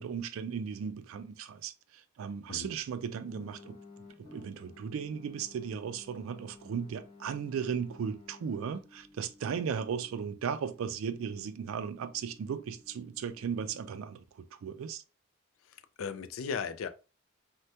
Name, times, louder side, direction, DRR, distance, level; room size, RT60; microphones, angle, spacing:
voice 1, 0.0-3.8 4.2-15.0, right 7 dB, 80° right, 0.3 m, -36 dB
sound 1, 3.1-14.0, left 3 dB, 20° left, 0.7 m, -56 dB
voice 2, 15.7-16.9, left 6 dB, 75° left, 0.4 m, -37 dB
2.7 x 2.2 x 3.2 m
head